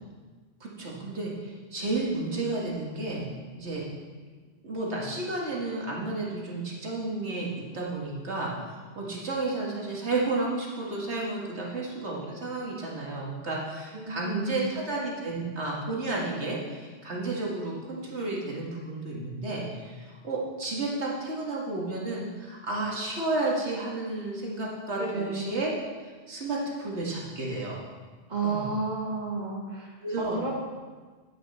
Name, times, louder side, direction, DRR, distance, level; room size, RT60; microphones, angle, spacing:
voice 1, 0.6-3.3 3.6-3.9 4.6-25.7 26.3-27.8 28.4-28.6 30.0-30.4, right 2 dB, 90° right, -3 dB, 2.2 m, -32 dB
voice 2, 13.9-14.6 25.0-25.4 28.3-29.9 30.2-30.5, right 3 dB, 40° right, -3 dB, 2.0 m, -31 dB
11.0 x 9.8 x 4.3 m, 1.4 s
omnidirectional pair, 1.1 m